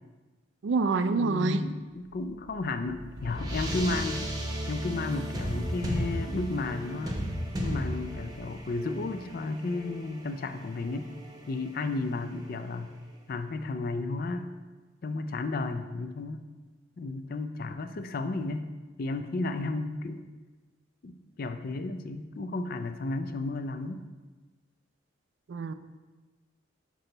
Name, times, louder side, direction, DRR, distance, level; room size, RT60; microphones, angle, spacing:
voice 1, 0.6-1.6 25.5-25.7, right 3 dB, 70° right, 11 dB, 0.4 m, -26 dB
voice 2, 1.2-4.3 4.7-7.2 7.6-11.1 11.5-12.9 13.3-14.5 15.0-16.4 17.0-18.7 19.0-20.2 21.0-24.0, left 3 dB, 50° left, 9 dB, 0.4 m, -33 dB
sound 1, 2.2-13.0, equal, 20° right, 0.7 m, -36 dB
6.2 x 5.4 x 3.9 m, 1.2 s
head